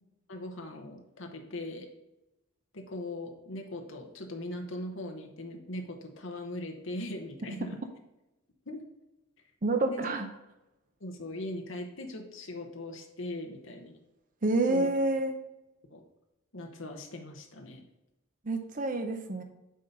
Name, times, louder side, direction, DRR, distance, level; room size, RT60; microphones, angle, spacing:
voice 1, 0.3-1.9 2.7-7.8 8.7-8.8 9.9-10.0 11.0-14.0 14.7-14.9 15.9-16.0 16.5-17.8, left 1 dB, 60° left, 3 dB, 1.0 m, -40 dB
voice 2, 9.6-10.3 14.4-15.3 18.4-19.4, right 2 dB, 40° right, 5 dB, 0.6 m, -28 dB
7.5 x 4.2 x 5.3 m, 0.96 s
head